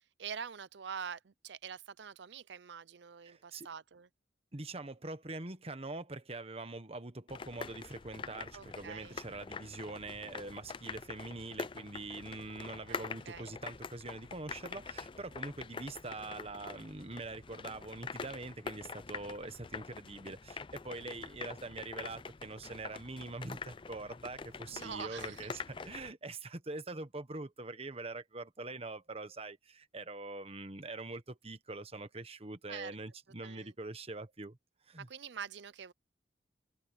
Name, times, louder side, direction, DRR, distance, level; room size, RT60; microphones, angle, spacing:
voice 1, 0.2-4.1 8.5-9.2 12.6-13.5 24.7-25.5 32.7-32.9 33.4-33.7 35.1-35.9, right 7 dB, 65° right, 0.6 m, -45 dB
voice 2, 3.2-3.7 4.5-34.6 34.9-35.1, right 2 dB, 35° right, 1.3 m, -44 dB
sound 1, 7.3-26.1, left 5 dB, 25° left, 0.4 m, -45 dB
head